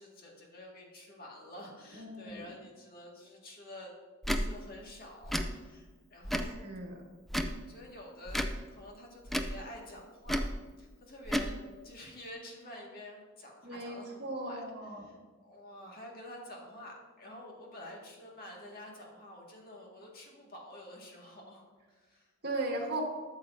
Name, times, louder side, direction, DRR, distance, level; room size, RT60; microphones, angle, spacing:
voice 1, 0.0-3.9 4.3-6.6 7.7-8.4 8.7-10.4 10.8-11.6 11.8-22.3, left 1 dB, 45° left, -1 dB, 1.8 m, -49 dB
voice 2, 1.9-2.5 6.3-7.0 13.6-15.0 22.4-23.0, right 2 dB, 50° right, 0 dB, 1.8 m, -38 dB
Tick / Tick-tock, 4.2-4.4 5.2-5.5 6.2-6.6 7.3-7.6 8.3-8.6 9.3-9.6 10.3-10.5 11.2-11.5, equal, ahead, 0.4 m, -31 dB
13.0 x 7.1 x 2.6 m, 1.4 s
head